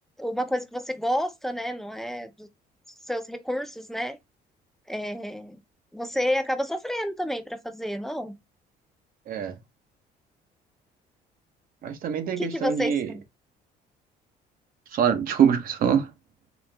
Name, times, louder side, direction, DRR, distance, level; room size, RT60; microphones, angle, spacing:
voice 1, 0.2-2.5 3.1-4.2 4.9-5.6 5.9-8.3 12.4-13.2, equal, ahead, 0.6 m, -30 dB
voice 2, 11.8-13.1 14.9-16.1, right 8 dB, 55° right, 0.8 m, -24 dB
4.3 x 2.4 x 3.3 m
cardioid pair, 110°, 17 cm